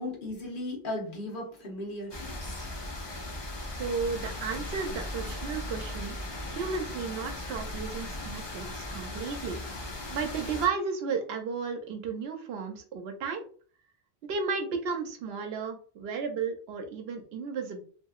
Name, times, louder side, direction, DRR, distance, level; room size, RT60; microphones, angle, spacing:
voice 1, 0.0-2.6 3.4-3.5, left 1 dB, 55° left, -2 dB, 1.1 m, -37 dB
sound 1, 2.1-10.7, left 1 dB, 35° left, 0.5 m, -38 dB
voice 2, 3.7-6.2 6.5-9.6 10.1-13.4 14.2-17.8, right 5 dB, 75° right, 4 dB, 0.8 m, -33 dB
2.7 x 2.5 x 2.3 m, 0.43 s
omnidirectional pair, 1.1 m